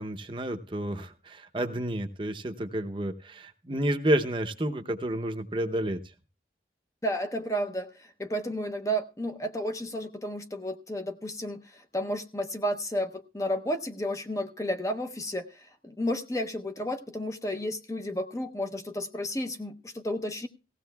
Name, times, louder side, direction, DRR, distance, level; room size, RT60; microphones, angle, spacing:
voice 1, 0.0-6.0, right 1 dB, 30° right, 6 dB, 0.7 m, -30 dB
voice 2, 7.0-20.5, equal, 20° left, 7 dB, 0.7 m, -32 dB
18.0 x 15.5 x 2.3 m, 0.31 s
head